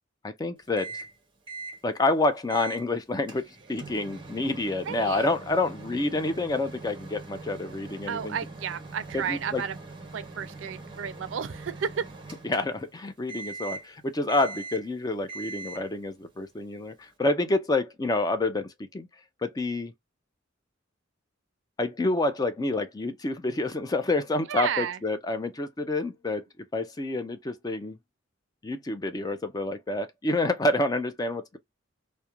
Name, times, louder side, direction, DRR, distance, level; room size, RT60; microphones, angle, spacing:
voice 1, 0.2-1.0 1.8-8.4 9.1-9.6 12.5-19.1 19.4-19.9 21.8-26.5 26.7-28.0 28.6-31.6, left 2 dB, 20° left, 0.4 m, -28 dB
Microwave oven, 0.8-1.2 1.5-1.8 2.5-2.9 3.3-12.9 13.3-13.9 14.3-14.9 15.3-15.9, right 3 dB, 25° right, 0.7 m, -42 dB
voice 2, 4.8-5.3 8.1-9.8 10.1-12.1 24.5-25.0, right 7 dB, 70° right, 0.4 m, -32 dB
2.3 x 2.1 x 2.8 m
head